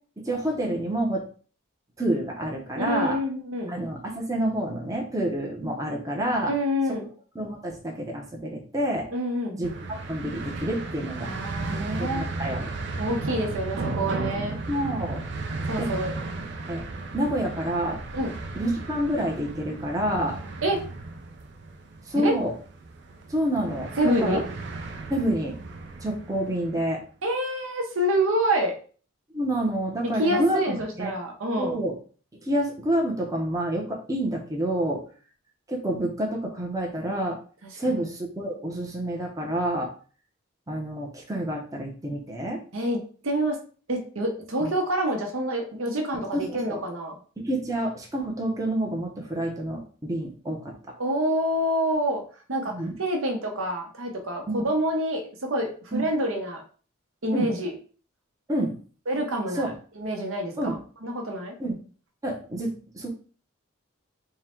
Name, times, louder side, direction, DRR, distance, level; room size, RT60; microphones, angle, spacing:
voice 1, 0.2-1.2 2.0-3.2 3.7-6.5 7.3-9.1 9.5-11.3 12.0-12.7 14.7-15.2 15.8-15.9 16.7-16.8 17.1-18.0 18.5-20.4 22.1-22.5 23.3-23.9 24.2-24.4 25.1-25.6 26.0-27.0 29.3-31.1 31.6-32.0 32.4-35.0 35.7-37.4 37.8-39.9 40.7-42.6 44.6-44.7 46.1-46.8 47.4-50.7 52.7-52.9 54.5-54.6 55.9-56.1 57.3-57.5 58.5-58.8 59.5-59.7 60.6-60.8 61.6-61.7 62.2-63.1, right 1 dB, 15° right, -1 dB, 0.7 m, -28 dB
voice 2, 2.8-3.8 6.5-7.1 9.1-9.6 11.2-12.3 13.0-14.6 15.7-16.1 18.1-18.4 20.6-20.8 22.1-22.3 24.0-24.4 27.2-28.7 30.0-31.8 37.9-38.0 42.7-43.0 43.2-43.6 43.9-47.2 51.0-52.2 52.5-52.7 53.0-56.6 57.2-57.7 59.1-61.5, equal, 75° right, 2 dB, 0.9 m, -27 dB
sound 1, 9.6-26.9, right 3 dB, 55° right, 0.5 m, -35 dB
3.7 x 2.2 x 4.3 m, 0.40 s
head